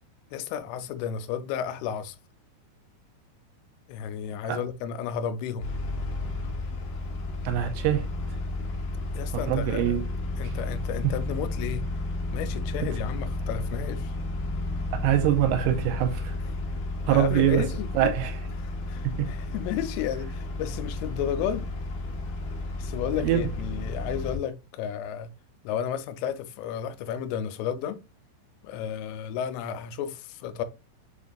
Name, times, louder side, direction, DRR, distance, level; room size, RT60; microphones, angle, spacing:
voice 1, 0.3-2.2 3.9-5.7 9.1-10.0 10.4-11.9 12.3-14.1 17.1-18.1 18.6-21.7 22.8-25.3 25.6-28.0 28.6-30.7, left 9 dB, 90° left, 3.0 m, -32 dB
sound 1, 5.6-24.4, left 2 dB, 75° left, 2.2 m, -32 dB
voice 2, 7.4-8.1 9.4-10.1 10.4-10.5 15.0-16.4 17.1-17.7 17.9-18.4 19.0-19.3 23.1-23.5, right 12 dB, 85° right, 2.9 m, -24 dB
7.0 x 2.6 x 2.2 m
omnidirectional pair, 5.5 m